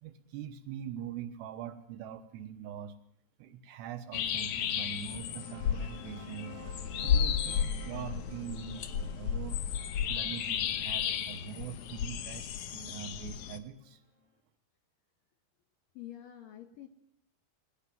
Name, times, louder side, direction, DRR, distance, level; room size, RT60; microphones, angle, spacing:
voice 1, 0.0-2.9 3.4-6.6 7.0-9.6 10.1-14.0, right 9 dB, 75° right, 9 dB, 3.1 m, -43 dB
sound 1, 4.1-13.6, left 8 dB, 85° left, 1.7 m, -33 dB
sound 2, 4.9-14.3, left 3 dB, 15° left, 1.2 m, -52 dB
voice 2, 15.9-16.9, left 12 dB, 65° left, 6 dB, 2.4 m, -47 dB
21.0 x 17.0 x 7.6 m, 0.69 s
omnidirectional pair, 5.3 m